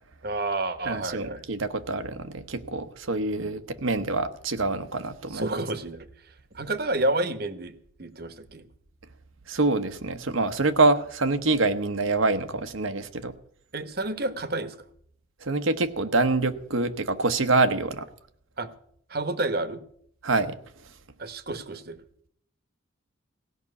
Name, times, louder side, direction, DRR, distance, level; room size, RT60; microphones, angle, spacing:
voice 1, 0.2-1.4 3.3-3.5 5.3-6.1 6.5-7.7 8.0-8.7 13.7-14.8 18.6-18.7 19.1-19.8 21.2-22.0, right 2 dB, 50° right, 11 dB, 1.1 m, -30 dB
voice 2, 0.9-5.6 9.5-13.4 15.4-18.1 20.2-20.6 20.8-20.9, right 3 dB, 80° right, 9 dB, 1.1 m, -26 dB
16.5 x 6.0 x 9.6 m, 0.65 s
head